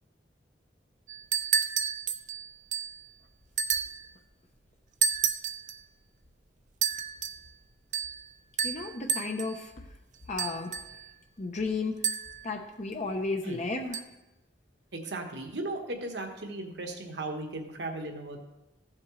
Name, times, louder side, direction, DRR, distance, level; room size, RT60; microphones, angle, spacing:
sound 1, 1.1-3.0 3.6-4.1 5.0-5.8 6.8-7.4 7.9-8.2 8.6-9.6 10.4-11.1 12.0-12.5 13.9-14.0, right 7 dB, 45° right, 0.6 m, -30 dB
voice 1, 8.6-9.9 10.3-10.7 11.4-12.0 12.4-14.0, left 3 dB, 40° left, 3 dB, 0.8 m, -33 dB
voice 2, 14.9-18.4, right 2 dB, 65° right, 3 dB, 1.4 m, -36 dB
15.0 x 7.4 x 3.2 m, 0.98 s
head